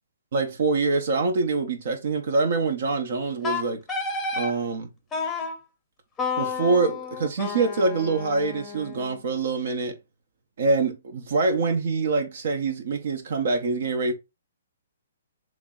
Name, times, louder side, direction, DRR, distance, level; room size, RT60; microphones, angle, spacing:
voice 1, 0.3-3.8 4.3-4.9 6.4-10.0 10.6-14.1, right 3 dB, 60° right, 0.7 m, -25 dB
Wind instrument woodwind instrument, 3.4-4.5 5.1-5.6 6.2-9.2, left 4 dB, 15° left, 0.7 m, -31 dB
3.1 x 2.7 x 3.6 m
hypercardioid pair, 150°, 0 cm